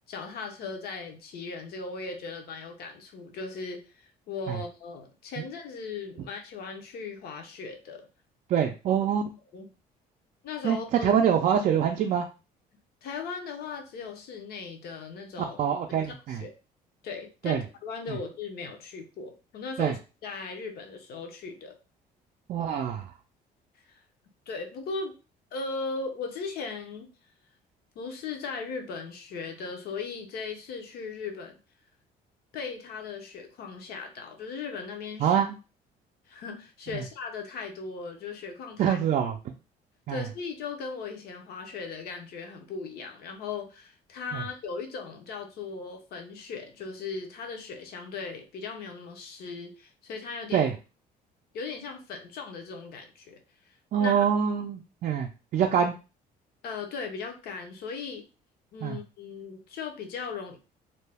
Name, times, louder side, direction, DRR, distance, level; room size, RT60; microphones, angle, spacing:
voice 1, 0.1-8.1 9.5-9.7 10.4-11.1 13.0-15.6 15.9-16.5 17.0-21.8 23.9-24.0 24.5-25.1 25.5-27.1 27.9-31.6 32.5-35.3 36.3-39.0 40.1-50.7 51.5-53.4 54.0-54.3 56.6-58.2 58.7-60.6, left 4 dB, 65° left, 4 dB, 0.7 m, -38 dB
voice 2, 8.5-9.2 10.6-12.3 15.4-16.4 17.4-17.6 18.1-18.2 19.8-19.9 22.5-23.1 35.2-35.5 36.9-37.0 38.8-39.3 40.1-40.2 44.3-44.4 50.5-50.7 53.9-55.9 58.8-59.0, right 8 dB, 50° right, 2 dB, 0.4 m, -25 dB
2.6 x 2.2 x 3.3 m, 0.32 s
cardioid pair, 110°, 17 cm